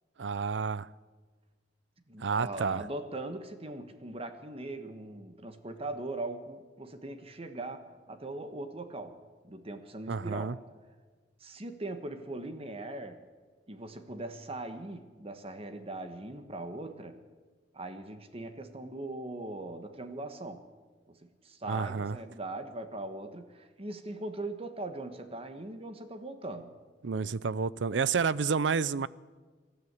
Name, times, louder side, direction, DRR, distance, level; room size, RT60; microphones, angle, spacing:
voice 1, 0.2-0.9 2.2-2.8 10.1-10.6 21.7-22.2 27.0-29.1, right 5 dB, 90° right, 20 dB, 0.6 m, -30 dB
voice 2, 2.1-9.2 9.4-10.5 11.4-13.2 13.7-17.2 17.7-20.7 21.1-26.7, right 2 dB, 35° right, 8 dB, 1.3 m, -40 dB
25.5 x 13.0 x 8.2 m, 1.4 s
head